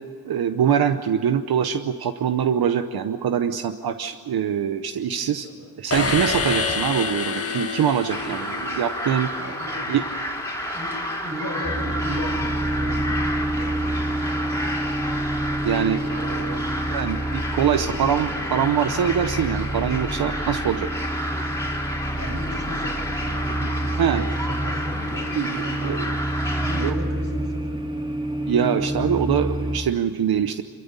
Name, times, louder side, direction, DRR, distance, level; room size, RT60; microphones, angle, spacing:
voice 1, 0.3-5.5 5.8-9.3 9.9-10.0 15.6-16.6 16.9-20.9 24.0-24.2 25.3-26.0 26.8-26.9 28.5-30.6, right 8 dB, 85° right, 8 dB, 0.9 m, -23 dB
voice 2, 5.2-5.7 8.2-8.8 9.4-10.4 10.7-14.0 16.5-17.0 17.6-18.7 22.2-26.1 26.6-28.1, equal, 40° right, 1 dB, 6.4 m, -36 dB
sound 1, 5.9-9.1, left 4 dB, 40° left, 1.7 m, -27 dB
sound 2, 8.1-26.9, equal, 5° left, 3.6 m, -31 dB
sound 3, 11.6-29.8, right 1 dB, 15° right, 2.0 m, -28 dB
26.0 x 14.5 x 9.7 m, 2.2 s
cardioid pair, 80°, 36 cm